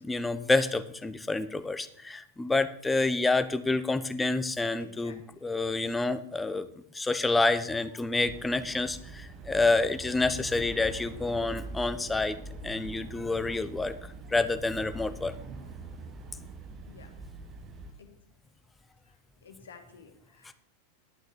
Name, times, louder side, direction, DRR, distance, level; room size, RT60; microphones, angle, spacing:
voice 1, 0.0-6.7 6.9-12.4 12.6-14.0 14.3-15.3 20.4-20.5, left 3 dB, 10° left, 11 dB, 0.8 m, -28 dB
voice 2, 4.8-5.2 16.9-17.2 18.0-18.1 19.4-20.5, left 5 dB, 70° left, 5 dB, 1.8 m, -52 dB
sound 1, 8.2-17.9, right 3 dB, 30° right, 1.4 m, -43 dB
11.5 x 6.3 x 6.4 m, 0.68 s
figure-of-eight pair, 90°, 0 cm